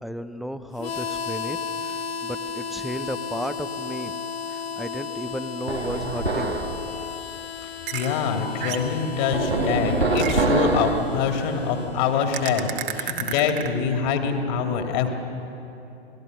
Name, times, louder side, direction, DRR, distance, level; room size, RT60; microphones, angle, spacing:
voice 1, 0.0-4.1 4.5-6.6, equal, ahead, 12 dB, 0.7 m, -34 dB
Harmonica, 0.8-13.4, left 6 dB, 70° left, 1.1 m, -35 dB
sound 1, 5.7-6.7 9.3-11.1, right 3 dB, 80° right, 2.3 m, -24 dB
voice 2, 7.9-15.1, left 6 dB, 45° left, 4 dB, 2.7 m, -25 dB
sound 2, 7.9-8.2 8.6-9.0 10.2-10.6 12.3-13.7, right 10 dB, 55° right, 2.1 m, -31 dB
28.5 x 19.5 x 6.6 m, 2.9 s
figure-of-eight pair, 95°, 32 cm